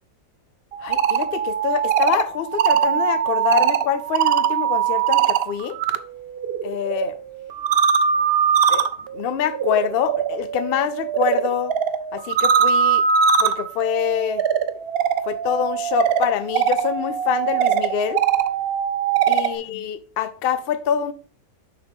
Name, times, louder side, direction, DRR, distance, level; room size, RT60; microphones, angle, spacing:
sound 1, 0.7-6.0 6.3-19.6, right 8 dB, 75° right, 0.5 m, -22 dB
voice 1, 0.8-5.8 6.6-7.1 8.7-8.9 9.1-11.7 12.1-13.0 13.4-14.4 15.2-18.2 19.3-21.1, left 8 dB, 75° left, 0.5 m, -25 dB
6.8 x 5.5 x 3.6 m
omnidirectional pair, 1.7 m